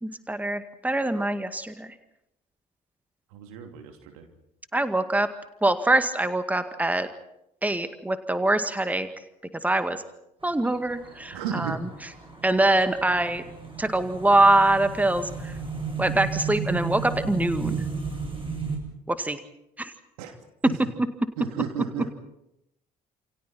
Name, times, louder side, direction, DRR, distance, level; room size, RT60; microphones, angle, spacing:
voice 1, 0.0-1.9 4.7-5.3 5.6-7.1 7.6-9.1 9.6-10.0 10.4-11.8 12.4-13.4 13.8-15.5 16.0-17.9 19.1-19.4 19.8-19.9, right 2 dB, 10° right, 10 dB, 2.0 m, -24 dB
voice 2, 3.3-4.3 11.3-11.8 20.2-20.3 20.7-20.8 21.4-22.1, right 9 dB, 70° right, 5 dB, 3.0 m, -33 dB
sound 1, 10.4-18.8, right 5 dB, 25° right, 7.9 m, -34 dB
29.0 x 28.0 x 4.4 m, 0.82 s
figure-of-eight pair, 50°, 20 cm